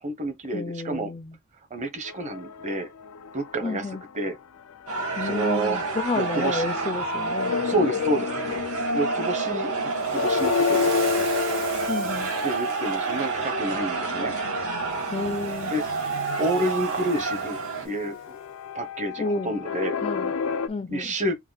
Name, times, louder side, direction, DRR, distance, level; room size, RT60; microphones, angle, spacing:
voice 1, 0.0-1.1 1.7-2.9 3.3-3.9 4.1-4.4 5.2-5.8 6.1-6.7 7.6-8.3 8.9-9.7 10.1-10.9 12.4-14.3 15.7-18.4 18.7-20.0 20.9-21.3, right 1 dB, 35° right, 0.9 m, -29 dB
voice 2, 0.5-1.4 3.6-4.0 5.2-7.6 11.9-12.3 15.1-15.7 19.2-19.5 20.0-20.3 20.7-21.1, left 3 dB, 25° left, 0.3 m, -31 dB
sound 1, 2.0-4.3 4.6-20.7, left 6 dB, 85° left, 0.5 m, -32 dB
sound 2, 4.9-17.8, right 4 dB, 85° right, 2.2 m, -29 dB
Waves surf, 10.0-13.2 15.0-18.1, right 4 dB, 60° right, 2.3 m, -40 dB
5.5 x 2.1 x 4.0 m
head